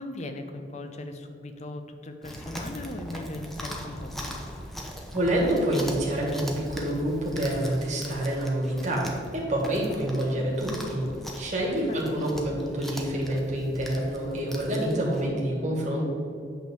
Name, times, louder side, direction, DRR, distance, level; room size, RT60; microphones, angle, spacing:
voice 1, 0.0-4.4 11.9-12.0, left 1 dB, 40° left, 7 dB, 0.7 m, -38 dB
Chewing mastication, 2.2-15.3, equal, ahead, 0.9 m, -40 dB
voice 2, 5.1-11.1 11.4-16.0, right 1 dB, 40° right, -3 dB, 1.7 m, -27 dB
8.8 x 3.7 x 6.9 m, 2.5 s
head